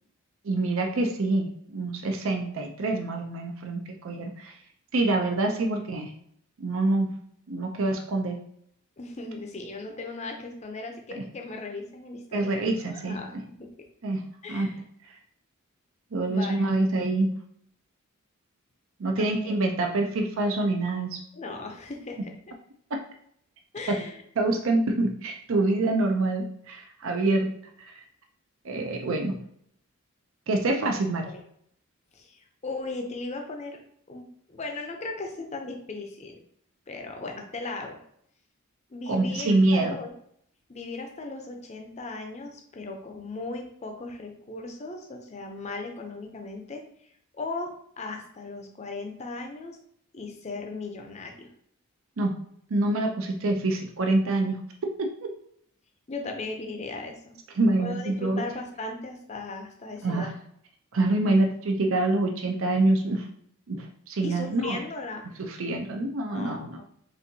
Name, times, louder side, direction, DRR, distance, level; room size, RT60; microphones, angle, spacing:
voice 1, 0.4-4.5 4.9-6.1 6.6-7.2 7.5-8.4 11.1-11.3 12.3-13.2 14.0-14.8 16.1-17.3 19.0-21.2 22.9-23.0 23.9-24.0 24.4-27.5 27.8-28.0 28.6-29.4 30.5-31.3 39.1-39.9 52.2-52.4 52.7-54.6 55.0-55.3 57.6-58.4 60.0-60.3 60.9-63.3 63.7-64.8 65.4-66.8, right 2 dB, 65° right, 3 dB, 0.5 m, -26 dB
voice 2, 9.0-12.7 12.9-13.9 14.4-14.7 16.2-16.8 19.2-19.3 21.3-22.3 23.7-24.2 31.2-31.4 32.1-33.8 34.1-36.4 36.9-38.0 38.9-40.1 40.7-46.8 47.4-49.8 50.1-51.5 56.1-57.3 57.8-60.3 64.2-65.3 66.3-66.8, left 3 dB, 30° left, 3 dB, 0.5 m, -37 dB
4.2 x 3.4 x 2.7 m, 0.68 s
head